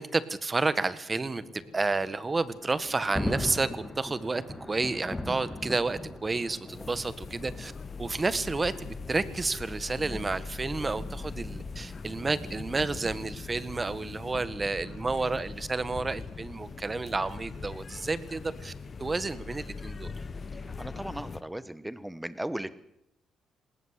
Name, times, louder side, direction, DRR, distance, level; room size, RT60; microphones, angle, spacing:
voice 1, 0.0-4.4 4.7-7.7 8.0-18.7 19.0-20.1, right 3 dB, 25° right, 14 dB, 1.6 m, -30 dB
sound 1, 1.1-7.9, left 4 dB, 60° left, 7.3 m, -52 dB
Thunder, 2.5-13.3, left 1 dB, 10° left, 2.3 m, -40 dB
sound 2, 6.7-21.4, left 4 dB, 40° left, 1.2 m, -41 dB
voice 2, 20.5-22.7, right 1 dB, 5° right, 14 dB, 1.6 m, -37 dB
19.5 x 19.0 x 8.4 m, 0.78 s
cardioid pair, 90°, 0 cm